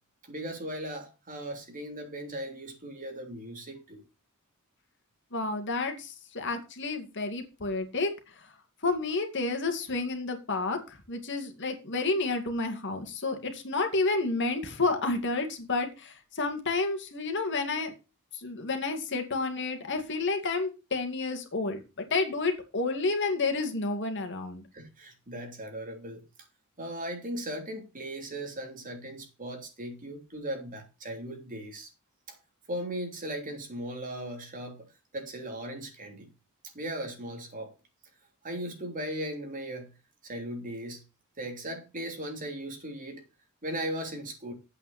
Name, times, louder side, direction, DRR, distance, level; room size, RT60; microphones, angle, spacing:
voice 1, 0.2-4.0 24.7-26.2 26.8-31.9 32.3-32.4 32.7-34.9 35.1-36.3 36.7-37.7 38.4-39.9 40.2-41.0 41.4-43.2 43.6-44.5, right 1 dB, 40° right, 3.3 m, -38 dB
voice 2, 5.3-8.5 8.8-17.9 18.3-24.6, left 3 dB, 55° left, 2.3 m, -30 dB
9.2 x 8.3 x 4.3 m
head